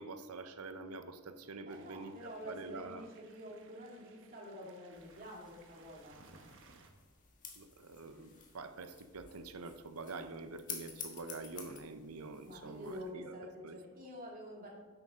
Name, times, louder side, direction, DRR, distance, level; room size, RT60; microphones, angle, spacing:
voice 1, 0.0-3.1 7.6-13.3 13.6-13.8, right 3 dB, 75° right, 9 dB, 0.7 m, -46 dB
voice 2, 1.7-6.5 12.4-14.7, equal, 40° right, -2 dB, 2.3 m, -48 dB
sound 1, 1.7-6.9, right 4 dB, 60° right, 1.0 m, -63 dB
sound 2, 4.9-13.1, left 6 dB, 35° left, 1.4 m, -52 dB
10.5 x 8.1 x 3.7 m, 1.3 s
head